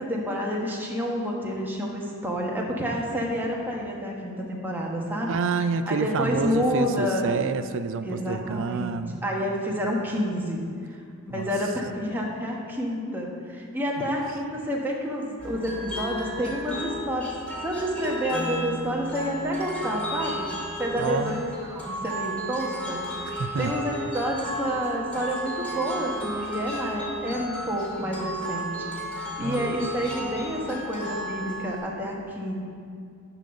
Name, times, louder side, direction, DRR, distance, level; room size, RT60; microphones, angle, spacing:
voice 1, 0.0-5.3 5.9-7.3 8.0-10.6 11.2-17.3 17.6-20.5 20.8-21.4 21.7-23.0 23.6-28.9 29.4-32.6, equal, 10° right, -2 dB, 1.2 m, -29 dB
voice 2, 5.3-9.2 11.3-11.5 14.0-14.1 21.0-21.4 23.3-23.7 29.4-29.7, right 5 dB, 60° right, 10 dB, 0.4 m, -28 dB
sound 1, 15.4-31.8, right 1 dB, 5° left, 2.4 m, -34 dB
11.5 x 4.0 x 6.4 m, 2.4 s
head